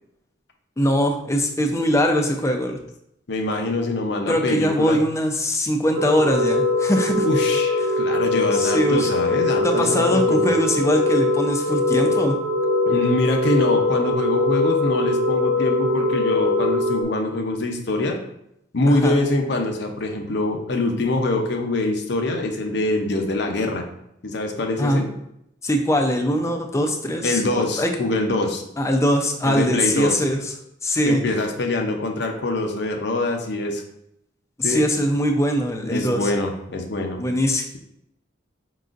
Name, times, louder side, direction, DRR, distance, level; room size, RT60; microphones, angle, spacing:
voice 1, 0.8-2.8 4.3-7.3 7.8-8.0 8.5-9.1 9.6-12.4 18.9-19.1 24.8-25.0 25.6-27.9 28.8-30.5 30.8-31.2 34.6-36.3 37.2-37.7, equal, 15° left, 3 dB, 0.5 m, -22 dB
voice 2, 3.3-5.0 7.2-10.5 12.8-18.2 18.7-23.8 24.2-25.1 27.2-28.6 29.4-30.1 31.0-33.8 34.6-34.8 35.9-37.2, left 2 dB, 60° left, 2 dB, 0.7 m, -24 dB
sound 1, 6.0-17.0, left 2 dB, 55° right, 1.0 m, -22 dB
5.4 x 3.9 x 2.5 m, 0.78 s
head